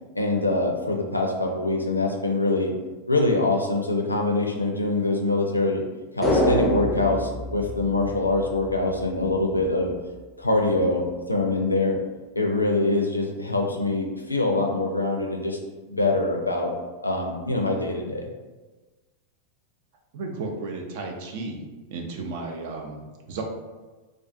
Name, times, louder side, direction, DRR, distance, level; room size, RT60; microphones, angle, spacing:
voice 1, 0.2-2.7 3.1-5.8 6.2-9.9 10.4-12.0 12.4-15.6 15.9-16.7 17.0-18.2, left 2 dB, 85° left, 2 dB, 0.4 m, -24 dB
sound 1, 6.2-8.7 9.0-9.1, left 1 dB, 10° left, 0.5 m, -25 dB
voice 2, 20.1-21.6 21.9-23.4, right 3 dB, 50° right, 2 dB, 0.4 m, -34 dB
2.4 x 2.3 x 2.6 m, 1.2 s
figure-of-eight pair, 90°, 0 cm